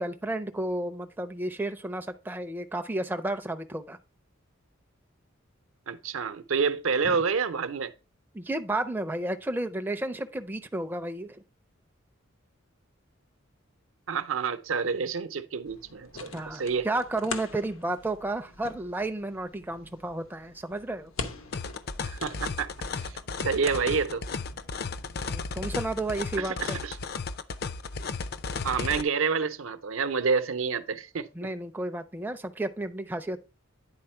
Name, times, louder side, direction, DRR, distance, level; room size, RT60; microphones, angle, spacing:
voice 1, 0.0-4.0 7.0-7.2 8.3-11.4 16.3-21.1 25.3-26.8 31.3-33.4, right 2 dB, 10° right, 0.4 m, -32 dB
voice 2, 5.9-7.9 14.1-16.9 22.0-22.7 23.0-24.2 26.4-27.0 28.6-31.5, right 5 dB, 80° right, 0.6 m, -28 dB
sound 1, 15.6-26.6, left 4 dB, 90° left, 1.0 m, -44 dB
sound 2, 21.5-29.0, left 4 dB, 50° left, 0.5 m, -34 dB
9.7 x 4.2 x 4.4 m
head